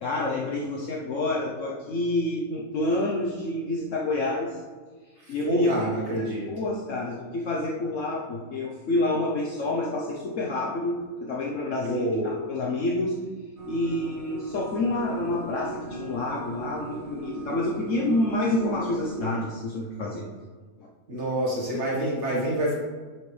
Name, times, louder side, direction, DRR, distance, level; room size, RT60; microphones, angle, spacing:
voice 1, 0.0-4.6 5.3-5.7 6.2-13.2 13.7-20.3 20.8-20.9, left 2 dB, 65° left, -2 dB, 1.2 m, -28 dB
voice 2, 5.2-6.5 11.9-12.4 21.1-22.7, right 1 dB, 55° right, -4 dB, 1.9 m, -27 dB
Piano Echo, 13.6-19.4, right 4 dB, 90° right, 1.8 m, -39 dB
10.5 x 6.3 x 3.3 m, 1.4 s
omnidirectional pair, 1.4 m